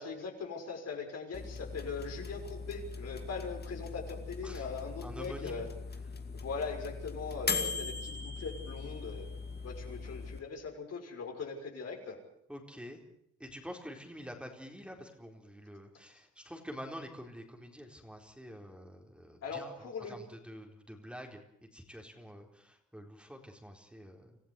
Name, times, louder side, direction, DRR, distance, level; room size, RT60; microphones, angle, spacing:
voice 1, 0.0-5.7 6.3-9.3 9.6-12.2 19.4-20.1, left 5 dB, 55° left, 3 dB, 6.2 m, -40 dB
sound 1, 1.3-10.4, left 4 dB, 35° left, 2.6 m, -40 dB
voice 2, 5.0-5.6 12.5-13.0 13.4-24.4, equal, 5° right, 2 dB, 4.2 m, -47 dB
26.5 x 15.0 x 8.4 m, 0.73 s
cardioid pair, 90°, 30 cm